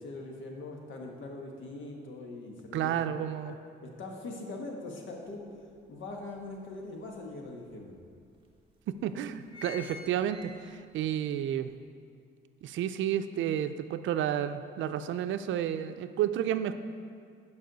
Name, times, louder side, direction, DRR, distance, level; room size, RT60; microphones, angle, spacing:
voice 1, 0.0-3.5 3.8-5.5 5.9-7.9, left 2 dB, 75° left, 1 dB, 1.4 m, -42 dB
voice 2, 2.7-3.6 8.9-11.7 12.6-16.7, right 10 dB, 75° right, 10 dB, 0.5 m, -31 dB
sound 1, 5.3-5.4 5.8-7.0 7.7-7.8 8.0-8.1 8.8-9.0 9.2-11.1 11.5-11.6, left 4 dB, 25° right, 1.2 m, -47 dB
11.5 x 5.5 x 4.0 m, 2.2 s
cardioid pair, 90°, 20 cm